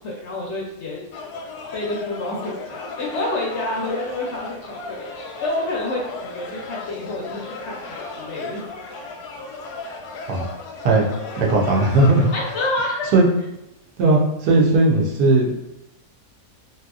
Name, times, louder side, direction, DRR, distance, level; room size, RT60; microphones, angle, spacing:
voice 1, 0.0-1.1 1.7-8.7 12.3-13.1, left 2 dB, 70° left, -2 dB, 0.7 m, -28 dB
sound 1, 1.1-12.7, left 3 dB, 85° left, 1.2 m, -35 dB
voice 2, 11.3-12.3 13.1-13.3 14.0-15.5, right 2 dB, 85° right, -2 dB, 1.3 m, -17 dB
3.0 x 2.8 x 2.3 m, 0.89 s
omnidirectional pair, 1.7 m